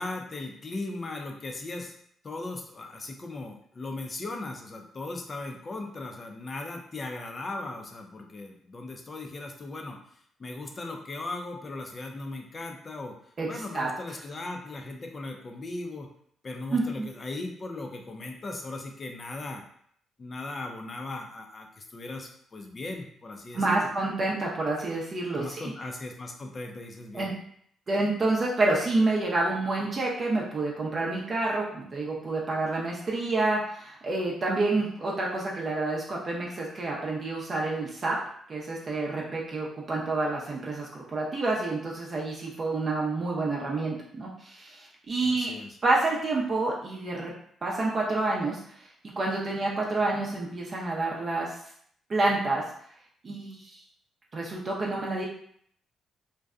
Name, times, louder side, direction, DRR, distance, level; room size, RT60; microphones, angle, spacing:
voice 1, 0.0-1.9 2.2-10.0 10.4-13.1 13.5-16.1 16.4-19.6 20.2-23.9 25.4-27.3 45.2-45.8, left 2 dB, 35° left, 3 dB, 0.4 m, -38 dB
voice 2, 13.4-13.9 16.7-17.1 23.5-25.7 27.1-27.3 27.9-38.2 38.5-45.6 45.8-47.3 47.6-48.9 49.2-51.6 52.1-52.6 53.2-53.8 54.3-55.2, right 2 dB, 40° right, -3 dB, 0.5 m, -28 dB
2.6 x 2.1 x 2.4 m, 0.64 s
cardioid pair, 90°, 0 cm